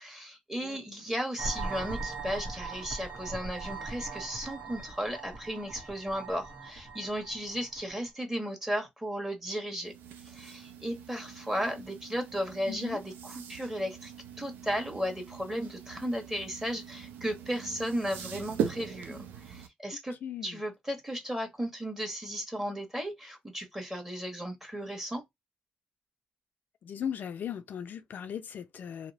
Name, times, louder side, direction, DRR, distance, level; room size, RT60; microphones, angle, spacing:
voice 1, 0.0-9.9 10.2-14.1 14.4-25.2, equal, 10° right, 1.3 m, -35 dB
sound 1, 1.4-8.1, right 3 dB, 55° right, 0.9 m, -40 dB
sound 2, 9.8-19.7, right 8 dB, 90° right, 0.5 m, -41 dB
voice 2, 12.7-13.0 20.2-20.6 26.8-29.1, left 8 dB, 65° left, 0.3 m, -38 dB
2.7 x 2.0 x 2.5 m
supercardioid pair, 60°, 3 cm